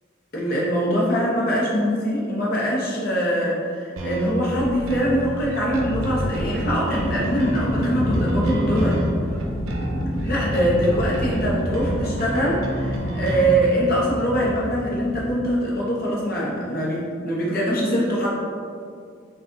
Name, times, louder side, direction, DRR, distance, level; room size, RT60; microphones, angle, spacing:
voice 1, 0.3-9.0 10.2-18.4, equal, 50° left, -6 dB, 1.0 m, -23 dB
sound 1, 4.0-13.6, right 1 dB, 85° right, 0.6 m, -29 dB
sound 2, 5.7-15.3, equal, ahead, 0.4 m, -29 dB
4.1 x 2.5 x 3.8 m, 2.2 s
head